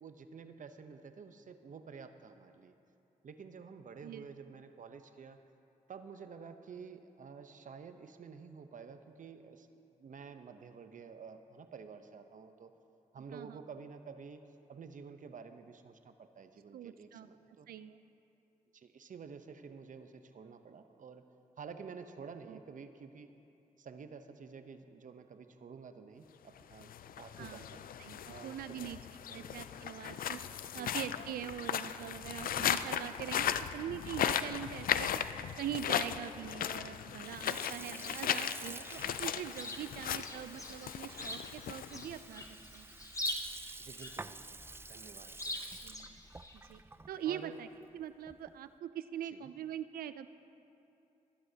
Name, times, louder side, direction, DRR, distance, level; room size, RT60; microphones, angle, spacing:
voice 1, 0.0-2.7 3.2-5.4 5.9-12.7 13.1-14.4 14.7-17.7 18.7-21.3 21.6-23.3 23.8-26.9 27.2-27.8 28.3-29.0 29.3-29.6 30.7-31.0 37.8-38.0 43.8-44.6 44.9-45.4 47.2-47.6 49.3-49.5, right 5 dB, 60° right, 9 dB, 0.8 m, -50 dB
voice 2, 16.7-17.3 17.7-18.0 22.5-22.6 27.4-27.6 28.0-29.0 29.3-30.4 30.7-35.2 35.6-42.9 45.8-46.2 46.7-46.8 47.1-47.7 47.9-50.3, right 10 dB, 90° right, 13 dB, 0.4 m, -43 dB
sound 1, 26.7-42.4, left 9 dB, 75° left, 0.4 m, -37 dB
Sink (filling or washing) / Fill (with liquid), 37.1-48.7, right 3 dB, 15° right, 0.3 m, -50 dB
Chirp tweet, 39.3-46.8, left 1 dB, 20° left, 1.1 m, -44 dB
23.0 x 11.0 x 2.8 m, 2.8 s
cardioid pair, 55°, 15 cm